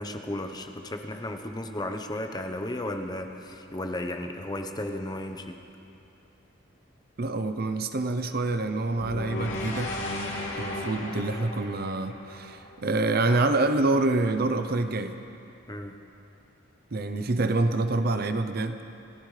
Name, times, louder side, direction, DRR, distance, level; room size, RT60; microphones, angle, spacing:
voice 1, 0.0-5.6 15.7-16.0, left 1 dB, 20° left, 5 dB, 0.9 m, -34 dB
voice 2, 7.2-9.9 10.6-15.2 16.9-18.8, right 2 dB, 55° right, 8 dB, 0.7 m, -26 dB
sound 1, 9.0-13.2, left 2 dB, 80° left, 2.5 m, -35 dB
29.5 x 14.0 x 3.3 m, 2.7 s
head